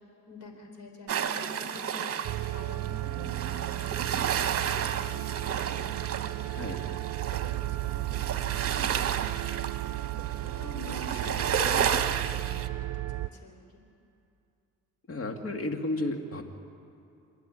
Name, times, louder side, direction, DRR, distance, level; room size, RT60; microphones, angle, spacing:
voice 1, 0.3-6.5 7.3-9.8 10.4-11.4 12.0-13.8, left 1 dB, 70° left, 4 dB, 4.6 m, -48 dB
sound 1, 1.1-12.7, right 8 dB, 50° right, 1.2 m, -32 dB
sound 2, 2.2-13.3, right 16 dB, 65° right, 0.6 m, -34 dB
voice 2, 6.4-7.0 10.9-11.6 15.1-16.4, left 2 dB, 45° left, 4 dB, 2.5 m, -34 dB
28.0 x 11.5 x 10.0 m, 2.7 s
cardioid pair, 90°, 30 cm